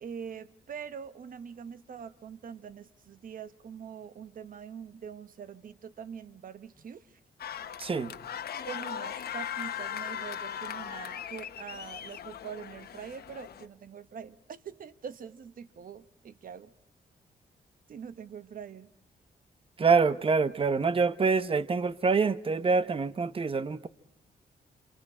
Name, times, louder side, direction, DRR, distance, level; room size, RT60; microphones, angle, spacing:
voice 1, 0.0-7.2 8.7-16.7 17.9-18.9, right 7 dB, 60° right, 1.0 m, -44 dB
sound 1, 7.4-13.6, left 9 dB, 80° left, 1.2 m, -39 dB
voice 2, 7.8-8.1 19.8-23.9, right 4 dB, 35° right, 0.9 m, -26 dB
27.5 x 27.0 x 4.9 m
wide cardioid pair, 115°, 16 cm